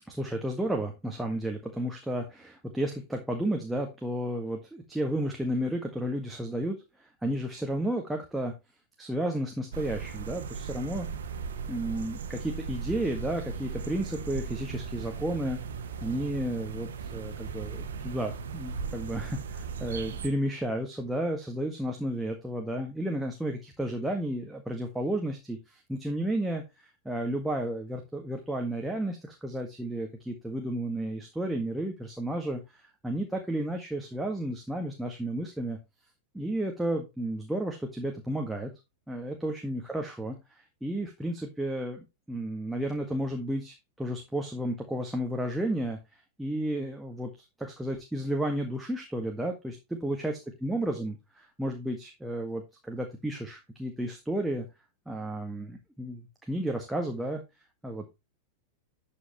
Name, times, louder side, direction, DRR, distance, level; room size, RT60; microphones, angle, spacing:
voice 1, 0.1-8.5 9.0-11.1 11.7-15.6 16.0-35.8 36.3-38.7 39.1-46.0 46.4-47.3 47.6-51.2 51.6-54.7 55.0-57.4 57.8-58.1, right 1 dB, 5° right, 2 dB, 1.7 m, -32 dB
sound 1, 9.7-20.3, right 6 dB, 65° right, 1.6 m, -37 dB
12.0 x 5.7 x 3.1 m, 0.24 s
figure-of-eight pair, 90°, 0 cm